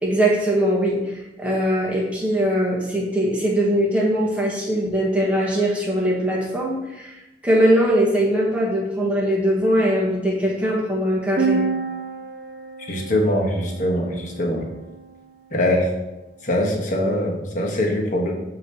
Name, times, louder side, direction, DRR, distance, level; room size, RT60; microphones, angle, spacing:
voice 1, 0.0-7.1 7.4-11.6, equal, 10° right, -3 dB, 1.3 m, -21 dB
sound 1, 11.4-15.1, right 4 dB, 65° right, 0.8 m, -29 dB
voice 2, 12.9-14.7 15.5-15.9 16.4-18.3, left 1 dB, 45° left, 0 dB, 1.2 m, -22 dB
8.2 x 3.1 x 5.5 m, 0.98 s
head